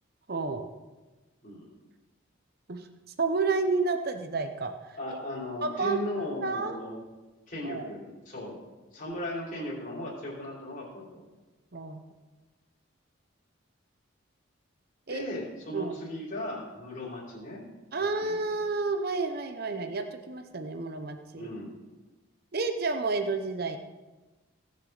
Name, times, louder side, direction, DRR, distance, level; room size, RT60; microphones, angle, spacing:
voice 1, 0.3-0.7 2.7-2.9 3.2-4.9 5.6-6.8 7.6-7.9 11.7-12.0 15.1-15.2 15.7-16.0 17.9-21.5 22.5-23.8, right 3 dB, 50° right, 7 dB, 0.8 m, -30 dB
voice 2, 1.4-1.7 5.0-7.0 7.5-8.6 8.9-11.3 15.1-17.6 18.2-18.3 21.3-21.7, left 1 dB, 40° left, -5 dB, 3.2 m, -37 dB
18.0 x 6.8 x 4.0 m, 1.2 s
head